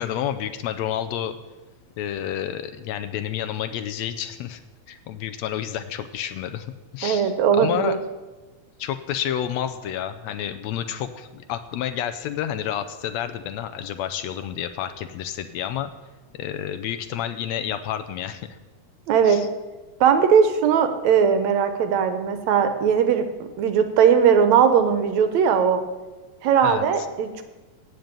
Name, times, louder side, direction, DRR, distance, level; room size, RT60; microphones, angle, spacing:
voice 1, 0.0-1.4 2.0-4.6 4.9-8.0 8.8-15.9 16.3-18.5 19.2-19.5 26.6-27.1, left 10 dB, 75° left, 9 dB, 1.7 m, -30 dB
voice 2, 7.0-8.0 19.1-19.4 20.0-25.8 26.4-27.4, right 7 dB, 75° right, 8 dB, 2.2 m, -19 dB
15.5 x 5.3 x 8.9 m, 1.2 s
omnidirectional pair, 3.3 m